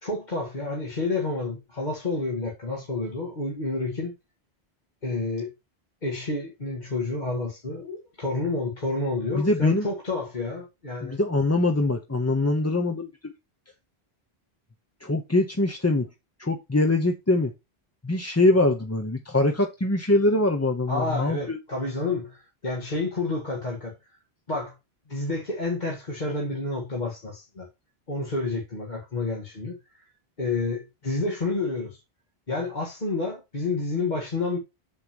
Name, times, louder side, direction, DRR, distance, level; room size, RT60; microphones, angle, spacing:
voice 1, 0.0-4.1 5.0-5.5 6.0-11.2 20.9-24.0 24.5-24.7 25.1-27.7 28.1-30.1 30.4-32.0 32.5-34.6, left 3 dB, 45° left, 1.7 m, -29 dB
voice 2, 9.3-9.9 11.0-13.3 15.0-16.1 16.4-17.5 18.0-21.6, left 2 dB, 15° left, 0.7 m, -23 dB
8.5 x 7.2 x 3.0 m
omnidirectional pair, 1.1 m